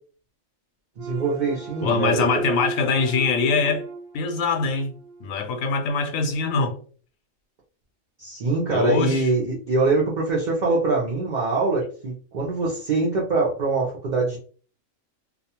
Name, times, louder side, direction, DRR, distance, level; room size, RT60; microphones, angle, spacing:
sound 1, 1.0-5.3, right 4 dB, 30° right, 0.8 m, -34 dB
voice 1, 1.0-2.3 8.2-14.4, right 3 dB, 60° right, 0.4 m, -23 dB
voice 2, 1.8-3.8 4.1-4.9 5.2-6.8 8.7-9.3, left 4 dB, 80° left, 1.0 m, -23 dB
2.4 x 2.2 x 2.8 m
omnidirectional pair, 1.4 m